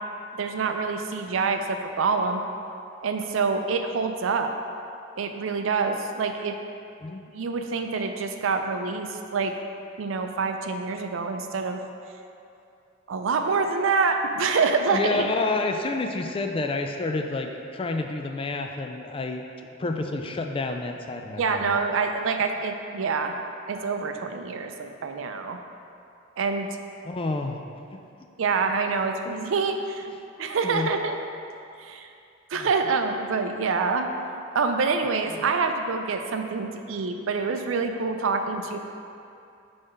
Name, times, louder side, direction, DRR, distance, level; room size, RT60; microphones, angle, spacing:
voice 1, 0.3-2.4 3.0-4.5 5.2-6.5 7.3-9.5 10.0-11.8 13.1-15.3 21.4-23.4 23.7-25.6 26.4-26.7 28.4-30.1 30.4-31.2 31.8-32.1 32.5-34.1 34.5-38.8, right 4 dB, 80° right, 5 dB, 0.4 m, -26 dB
voice 2, 14.9-21.8 27.0-27.6 29.3-29.4 30.6-30.9 32.5-32.7 35.3-35.4, left 2 dB, 25° left, 4 dB, 0.3 m, -29 dB
5.5 x 3.4 x 5.3 m, 2.6 s
head